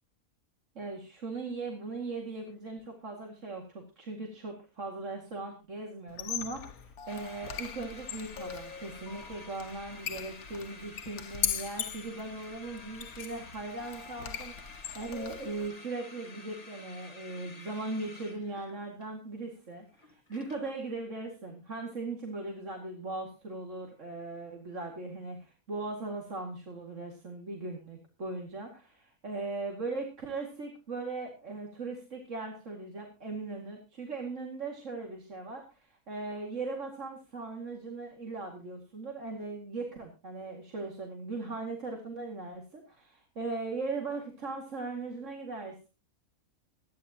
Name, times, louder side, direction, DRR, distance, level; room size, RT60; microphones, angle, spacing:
voice 1, 0.8-45.9, right 3 dB, 55° right, 1 dB, 2.5 m, -39 dB
Squeak, 6.1-15.7, left 8 dB, 85° left, 1.5 m, -40 dB
sound 1, 7.1-20.9, left 3 dB, 25° left, 1.6 m, -51 dB
23.5 x 10.5 x 2.9 m, 0.32 s
omnidirectional pair, 1.5 m